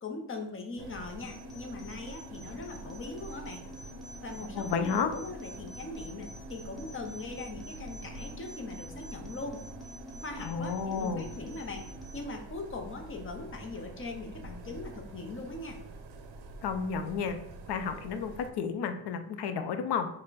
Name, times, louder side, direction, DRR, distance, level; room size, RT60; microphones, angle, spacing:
voice 1, 0.0-3.6 4.2-9.6 10.2-11.9 12.1-15.8, left 3 dB, 30° left, 4 dB, 0.5 m, -40 dB
sound 1, 0.8-18.5, right 3 dB, 65° right, 0.6 m, -47 dB
sound 2, 1.2-12.2, left 1 dB, ahead, 0.7 m, -48 dB
voice 2, 4.5-5.1 10.4-11.3 16.6-17.4 17.7-20.1, left 6 dB, 75° left, 8 dB, 0.6 m, -31 dB
5.4 x 2.1 x 3.9 m, 0.74 s
wide cardioid pair, 175°, 40 cm